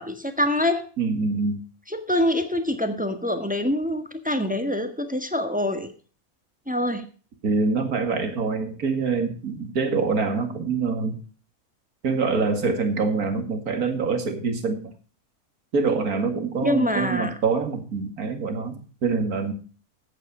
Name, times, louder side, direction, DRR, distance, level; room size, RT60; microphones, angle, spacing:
voice 1, 0.0-0.9 1.9-5.9 6.7-7.1 16.6-17.4, left 1 dB, 5° right, 7 dB, 1.4 m, -25 dB
voice 2, 1.0-1.6 7.4-11.2 12.0-14.9 15.7-19.5, right 4 dB, 85° right, 7 dB, 2.4 m, -25 dB
14.0 x 8.6 x 4.9 m, 0.39 s
omnidirectional pair, 1.5 m